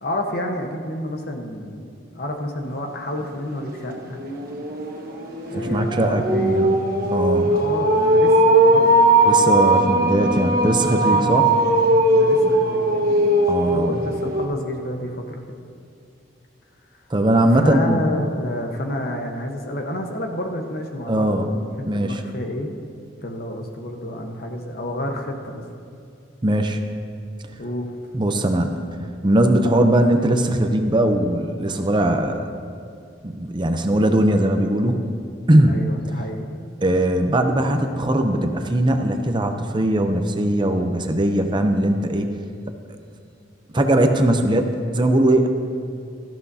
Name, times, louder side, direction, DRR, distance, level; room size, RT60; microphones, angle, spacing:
voice 1, 0.0-4.2 5.5-6.8 7.5-9.0 11.0-11.4 12.0-13.1 13.7-15.4 17.5-22.7 23.2-25.6 27.6-27.9 35.6-36.4, left 1 dB, 50° left, 3 dB, 1.1 m, -29 dB
sound 1, 3.2-3.3 3.7-14.4, right 1 dB, 50° right, 1.3 m, -19 dB
voice 2, 5.5-6.7 7.1-7.6 9.3-11.5 13.5-14.0 17.1-18.1 21.1-21.5 21.9-22.2 26.4-26.8 28.1-32.4 33.2-35.1 35.5-35.7 36.8-42.3 43.7-45.5, right 1 dB, 25° right, 5 dB, 0.6 m, -20 dB
17.0 x 14.0 x 2.8 m, 2.4 s
head